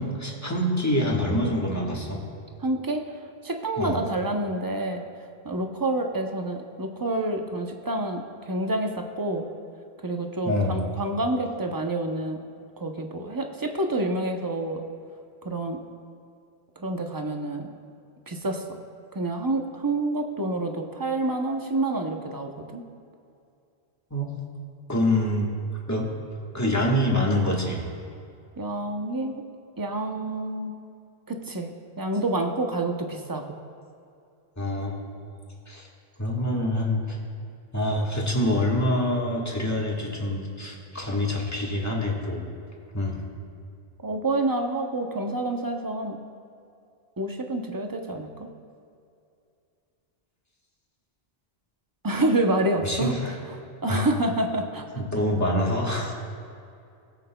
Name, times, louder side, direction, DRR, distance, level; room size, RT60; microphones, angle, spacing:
voice 1, 0.0-2.2 3.8-4.0 10.4-10.9 24.1-24.3 24.9-25.5 25.9-26.1 26.5-27.8 34.6-35.4 35.7-35.9 36.2-37.2 37.7-42.4 42.9-43.2 52.8-53.3 53.9-54.1 55.0-56.1, left 1 dB, 15° left, -2 dB, 1.3 m, -26 dB
voice 2, 2.6-3.0 3.4-5.0 5.4-9.5 10.0-12.4 12.8-14.8 15.4-15.8 16.8-17.7 18.3-18.6 19.1-22.8 28.6-29.4 29.8-30.8 31.3-33.6 44.0-46.2 47.2-48.5 52.0-53.1 53.8-54.9, right 2 dB, 25° right, 3 dB, 0.6 m, -28 dB
19.5 x 7.8 x 2.2 m, 2.5 s
omnidirectional pair, 1.1 m